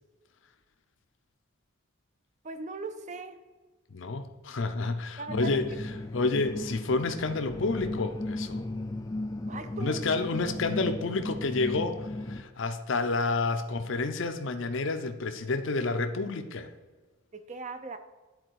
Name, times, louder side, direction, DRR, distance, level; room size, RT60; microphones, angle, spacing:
voice 1, 2.4-3.4 5.2-5.6 9.5-10.0 17.3-18.0, right 3 dB, 35° right, 9 dB, 0.6 m, -39 dB
voice 2, 3.9-5.7 6.1-8.6 9.8-16.7, left 3 dB, 65° left, 8 dB, 0.6 m, -29 dB
sound 1, 5.3-12.4, left 2 dB, 15° left, 0.3 m, -36 dB
10.5 x 4.1 x 4.6 m, 1.3 s
head